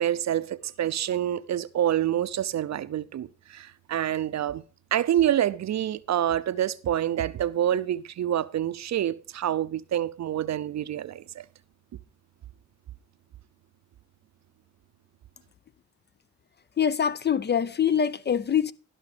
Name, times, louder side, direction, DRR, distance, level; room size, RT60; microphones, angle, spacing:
voice 1, 0.0-4.6 4.9-11.4, right 11 dB, 60° right, 0.6 m, -27 dB
voice 2, 16.8-18.7, left 8 dB, 35° left, 0.5 m, -24 dB
12.0 x 5.8 x 4.9 m
cardioid pair, 70°, 31 cm